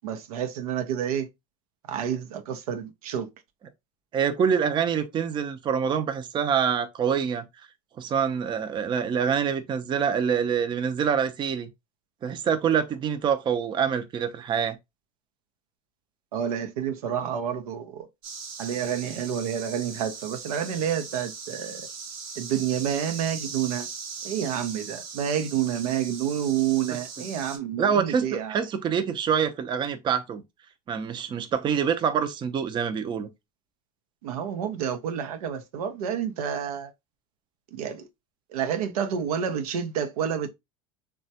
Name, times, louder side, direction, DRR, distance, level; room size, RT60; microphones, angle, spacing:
voice 1, 0.0-1.3 1.9-3.3 16.3-18.1 18.6-21.9 22.4-23.9 24.2-28.6 34.2-36.9 37.7-38.1 38.5-40.5, right 9 dB, 90° right, 0.6 m, -29 dB
voice 2, 4.1-7.5 8.0-11.7 12.2-14.8 27.8-30.4 30.9-33.3, right 7 dB, 25° right, 0.4 m, -26 dB
sound 1, 18.2-27.6, right 5 dB, 75° right, 1.0 m, -39 dB
3.3 x 2.2 x 2.6 m
supercardioid pair, 115°, 18 cm